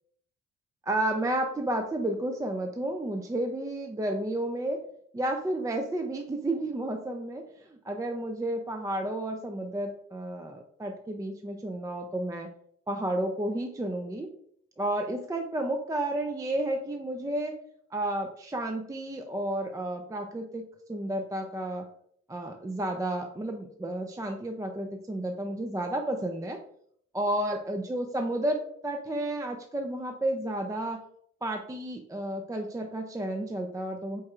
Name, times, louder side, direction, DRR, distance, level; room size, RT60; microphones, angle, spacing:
voice 1, 0.8-4.8 5.1-12.5 12.9-14.3 14.8-17.6 17.9-21.8 22.3-26.6 27.1-31.0 31.4-34.2, right 1 dB, 10° right, 4 dB, 0.4 m, -31 dB
4.5 x 4.3 x 2.4 m, 0.66 s
cardioid pair, 90°, 30 cm